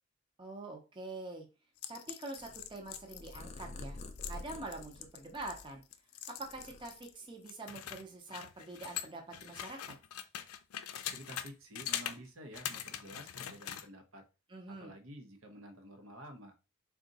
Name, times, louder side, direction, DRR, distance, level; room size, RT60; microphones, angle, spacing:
voice 1, 0.4-1.4 1.9-4.0 4.3-5.8 6.3-9.9 14.5-14.9, right 2 dB, 20° right, 1 dB, 0.7 m, -45 dB
sound 1, 1.8-7.1 7.5-11.5 11.7-12.2 12.5-13.9, left 10 dB, 90° left, 0.4 m, -43 dB
Purr, 2.4-5.9 6.3-7.4, left 2 dB, 30° left, 0.4 m, -48 dB
voice 2, 11.1-14.2 14.7-16.5, right 1 dB, 70° right, 6 dB, 0.8 m, -51 dB
3.7 x 2.4 x 3.9 m, 0.30 s
head